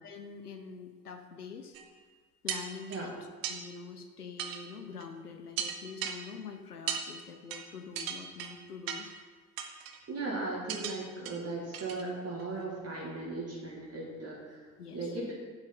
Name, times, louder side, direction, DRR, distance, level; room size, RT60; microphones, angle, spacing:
voice 1, 0.0-1.8 2.4-9.1 14.8-15.2, left 5 dB, 85° left, 7 dB, 0.8 m, -45 dB
sound 1, 1.7-1.8 2.5-3.0 3.4-3.6 4.4-4.6 5.0-5.1 5.6-6.2 6.9-7.0 7.5-7.6 8.0-8.5 8.9-9.1 9.6-10.0 10.7-11.0 11.3-11.4 11.7-12.0 12.4-12.5, right 9 dB, 50° right, 1.1 m, -36 dB
voice 2, 10.1-14.6 14.9-15.3, right 2 dB, 35° right, -5 dB, 2.4 m, -37 dB
8.9 x 8.0 x 5.7 m, 1.5 s
figure-of-eight pair, 55°, 45 cm